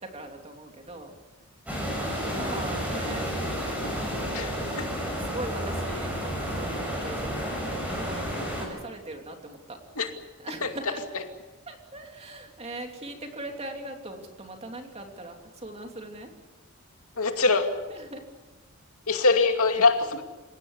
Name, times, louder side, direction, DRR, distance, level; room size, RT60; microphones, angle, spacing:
voice 1, 0.0-1.1 1.7-3.3 3.8-4.5 5.2-6.1 6.4-9.8 10.4-11.0 11.7-16.3 17.9-18.2, right 2 dB, 30° right, 3 dB, 3.1 m, -40 dB
sound 1, 1.7-8.7, equal, 5° right, 7.6 m, -31 dB
voice 2, 4.3-4.9 10.0-10.1 10.6-10.7 17.2-17.7 19.1-20.2, left 3 dB, 80° left, 5 dB, 2.5 m, -23 dB
28.5 x 16.5 x 8.4 m, 1.2 s
head